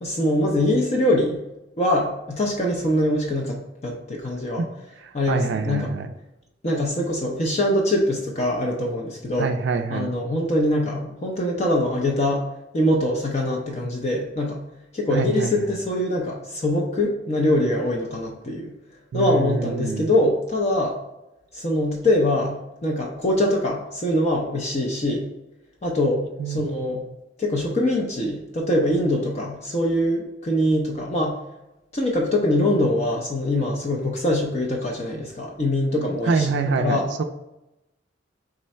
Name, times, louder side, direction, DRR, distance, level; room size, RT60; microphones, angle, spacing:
voice 1, 0.0-1.4 1.8-4.6 5.1-5.9 6.6-9.5 9.9-12.5 12.7-14.6 14.9-18.7 19.1-21.0 21.5-25.3 25.8-27.0 27.4-31.4 31.9-36.5 36.8-37.1, left 1 dB, 35° left, 0 dB, 0.5 m, -23 dB
voice 2, 5.0-6.1 9.4-10.2 15.1-15.7 19.1-20.1 26.4-26.7 36.2-37.2, right 4 dB, 65° right, 6 dB, 0.3 m, -25 dB
3.7 x 3.2 x 4.2 m, 0.92 s
head